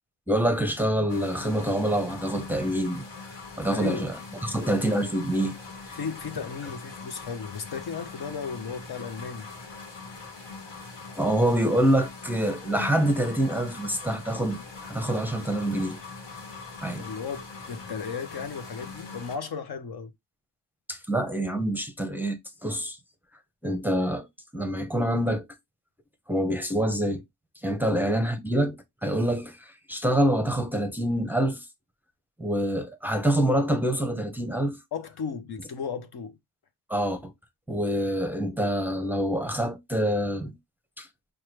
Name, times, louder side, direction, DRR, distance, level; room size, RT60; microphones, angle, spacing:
voice 1, 0.3-3.1 3.6-4.1 4.4-5.5 5.9-6.0 11.1-16.0 16.8-17.0 20.9-23.0 23.6-24.3 24.5-25.5 26.3-27.2 27.6-31.6 32.4-34.8 36.9-37.3 37.7-40.5 41.0-41.1, right 1 dB, 5° right, 0.6 m, -26 dB
sound 1, 1.1-19.4, left 4 dB, 85° left, 1.2 m, -42 dB
voice 2, 3.7-4.1 4.4-4.5 5.9-9.5 16.9-20.1 27.9-28.0 34.9-36.4, left 6 dB, 65° left, 0.7 m, -35 dB
4.6 x 2.3 x 3.1 m
cardioid pair, 70°, 42 cm